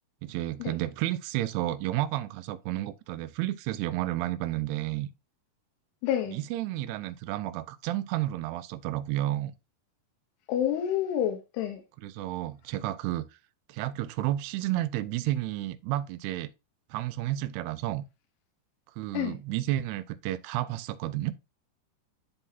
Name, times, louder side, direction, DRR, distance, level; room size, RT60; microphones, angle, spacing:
voice 1, 0.2-5.1 6.3-9.5 12.0-13.3 13.7-16.5 16.9-18.0 19.0-21.3, right 15 dB, 85° right, 2.5 m, -31 dB
voice 2, 6.0-6.4 10.5-11.8 19.1-19.4, left 10 dB, 85° left, 2.9 m, -28 dB
11.0 x 3.8 x 2.7 m
omnidirectional pair, 4.7 m